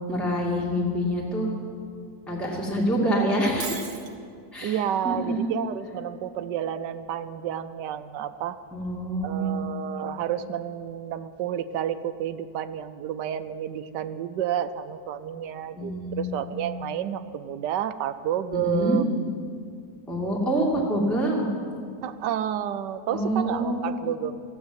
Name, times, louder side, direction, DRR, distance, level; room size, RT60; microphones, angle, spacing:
voice 1, 0.1-1.5 2.3-3.8 4.5-5.5 8.7-9.7 15.8-16.4 18.5-19.0 20.1-21.4 23.1-24.0, right 1 dB, ahead, -4 dB, 2.3 m, -26 dB
Shatter, 3.6-4.1, right 6 dB, 50° right, 1.4 m, -35 dB
voice 2, 4.6-8.6 9.2-19.0 22.0-24.4, right 10 dB, 75° right, 11 dB, 1.2 m, -30 dB
15.5 x 8.4 x 9.3 m, 2.2 s
omnidirectional pair, 1.9 m